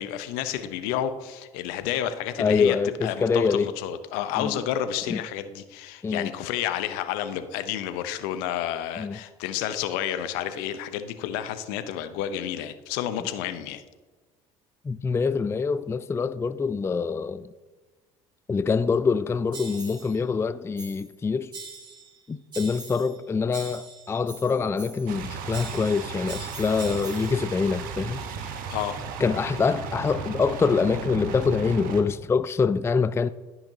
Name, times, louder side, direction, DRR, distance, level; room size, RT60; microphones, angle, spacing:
voice 1, 0.0-2.8 3.0-13.8 28.4-29.0, left 10 dB, 70° left, 0.8 m, -30 dB
voice 2, 2.4-3.7 4.4-4.5 5.1-5.2 6.0-6.3 9.0-9.2 14.8-17.5 18.5-21.5 22.3-28.2 29.2-33.3, left 5 dB, 15° left, 0.4 m, -25 dB
sound 1, 19.5-20.2 20.8-21.1 21.5-22.2 22.5-23.2 23.5-25.2 25.5-27.4, right 4 dB, 30° right, 2.5 m, -42 dB
sound 2, 25.1-32.0, right 5 dB, 65° right, 1.2 m, -35 dB
14.5 x 5.8 x 2.8 m
hypercardioid pair, 65°, 16 cm